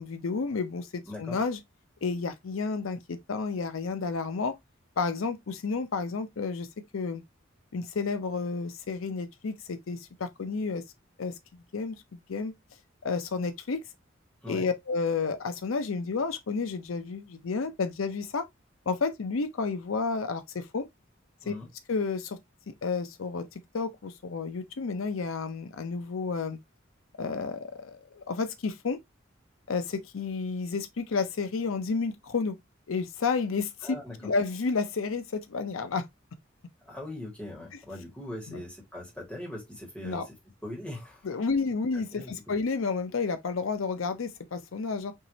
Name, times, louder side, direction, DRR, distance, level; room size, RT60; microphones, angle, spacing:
voice 1, 0.0-1.6 2.0-4.6 5.0-6.7 6.9-7.2 7.7-10.8 11.2-11.3 11.7-12.5 13.0-13.8 14.5-18.5 18.9-20.9 21.5-21.6 21.9-22.4 22.7-26.6 27.2-29.0 29.7-32.6 32.9-36.1 38.5-38.6 40.0-40.3 41.2-45.1, left 4 dB, 90° left, 0.6 m, -31 dB
voice 2, 1.1-1.4 14.4-14.7 21.4-21.7 33.8-34.3 36.8-40.4 40.6-41.3 41.9-42.5, left 1 dB, 5° left, 1.8 m, -41 dB
4.6 x 3.0 x 2.7 m
head